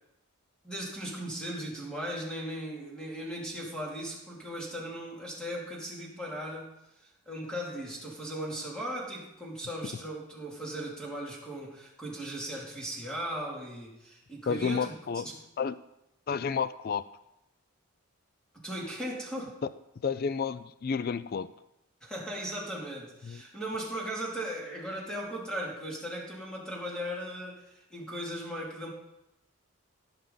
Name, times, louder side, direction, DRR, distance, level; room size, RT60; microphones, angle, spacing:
voice 1, 0.6-6.7 7.0-15.4 18.5-19.6 22.0-28.9, right 1 dB, 5° left, -4 dB, 2.6 m, -38 dB
voice 2, 14.5-15.2 15.6-15.7 16.3-17.0 19.6-19.7 20.0-21.5 23.2-23.4, left 6 dB, 40° left, 15 dB, 0.3 m, -30 dB
16.5 x 7.2 x 3.9 m, 0.89 s
head